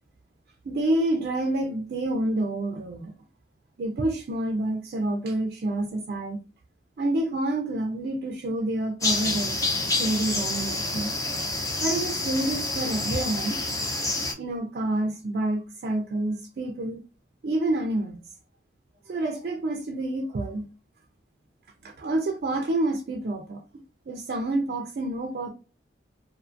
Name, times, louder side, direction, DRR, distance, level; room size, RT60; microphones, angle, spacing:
voice 1, 0.7-3.1 3.8-6.4 7.0-11.1 11.8-13.6 14.4-17.0 17.4-18.2 19.1-20.7 21.8-23.6 24.1-25.5, right 1 dB, 55° right, 0.4 m, -28 dB
sound 1, 9.0-14.3, left 2 dB, 20° left, 0.4 m, -28 dB
2.5 x 2.4 x 2.4 m
head